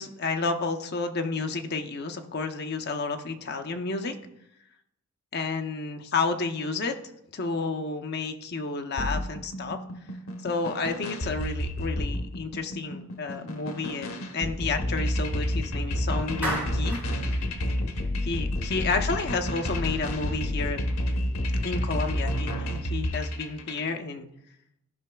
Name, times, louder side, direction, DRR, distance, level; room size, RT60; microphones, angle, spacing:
voice 1, 0.0-4.2 5.3-6.9 7.3-9.8 10.4-17.0 18.2-20.8 21.6-24.3, left 3 dB, 50° left, 6 dB, 0.6 m, -31 dB
sound 1, 9.0-23.9, left 1 dB, 90° left, 1.0 m, -30 dB
Clapping, 16.4-17.1, right 1 dB, 10° right, 1.7 m, -31 dB
14.0 x 5.6 x 2.3 m, 0.80 s
head